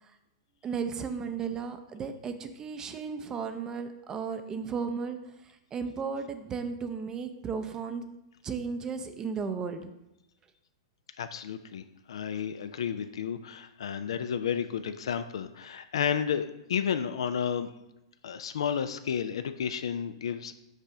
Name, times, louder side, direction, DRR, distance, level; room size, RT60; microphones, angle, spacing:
voice 1, 0.6-5.2 5.4-8.0 8.4-9.9, right 5 dB, 25° right, 8 dB, 0.5 m, -34 dB
voice 2, 11.2-17.7 18.2-20.5, left 8 dB, 75° left, 10 dB, 0.3 m, -32 dB
5.5 x 4.9 x 3.7 m, 0.89 s
hypercardioid pair, 120°, 3 cm